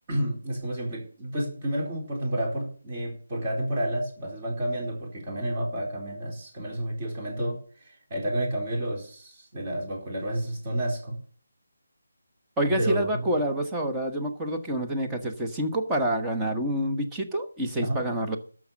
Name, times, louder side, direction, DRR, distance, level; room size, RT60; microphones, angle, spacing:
voice 1, 0.1-11.2 12.8-13.3 17.8-18.0, right 1 dB, 30° right, -1 dB, 4.3 m, -30 dB
voice 2, 12.6-18.4, right 1 dB, 10° right, 1 dB, 1.1 m, -27 dB
13.0 x 6.3 x 7.0 m, 0.43 s
figure-of-eight pair, 160°, 0 cm